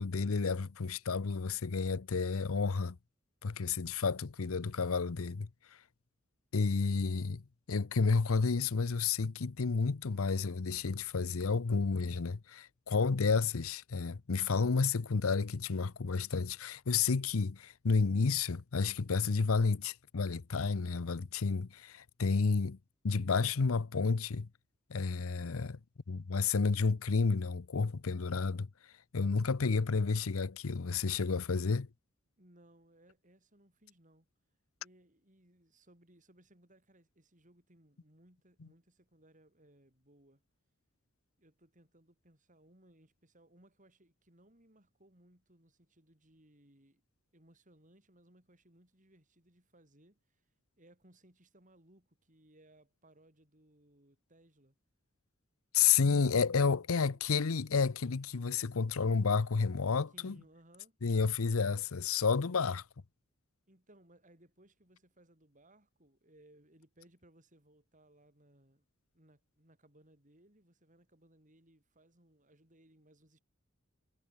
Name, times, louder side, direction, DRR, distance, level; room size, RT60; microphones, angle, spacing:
voice 1, 0.0-3.0 3.4-5.5 6.5-7.4 7.7-22.8 23.0-24.5 24.9-25.8 26.1-28.7 29.1-31.9 55.7-60.3 61.0-62.8, left 5 dB, 85° left, 0.7 m, -31 dB
voice 2, 32.4-34.3 34.8-40.4 41.4-47.0 47.3-50.4 50.8-54.8 56.8-57.3 59.7-61.0 61.4-61.9 63.7-68.9 69.1-73.4, right 1 dB, 40° right, 6.7 m, -64 dB
head